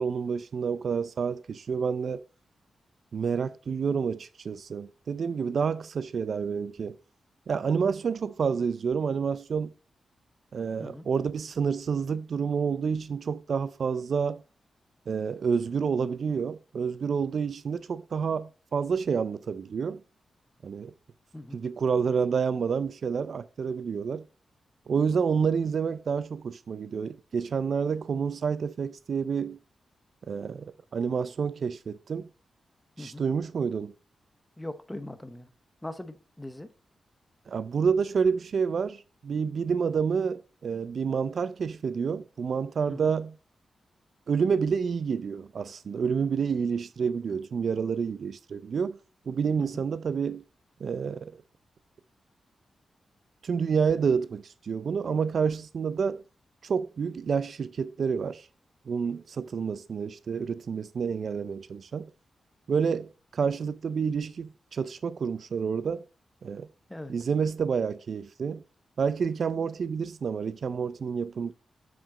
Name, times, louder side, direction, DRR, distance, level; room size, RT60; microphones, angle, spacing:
voice 1, 0.0-2.2 3.1-7.0 7.5-9.7 10.5-14.4 15.1-20.0 20.6-20.9 21.5-24.2 24.9-29.6 30.3-32.3 33.0-33.9 37.5-43.4 44.3-49.0 49.3-50.4 50.8-51.3 53.4-56.2 56.6-58.5 58.9-62.1 62.7-66.0 66.4-66.7 67.1-68.6 69.0-71.5, right 6 dB, 55° right, 0.4 m, -29 dB
voice 2, 34.6-35.5 35.8-36.7 42.9-43.1 49.6-49.8 66.9-67.1, left 1 dB, 10° left, 0.8 m, -40 dB
7.2 x 6.1 x 3.9 m
wide cardioid pair, 135°, 0 cm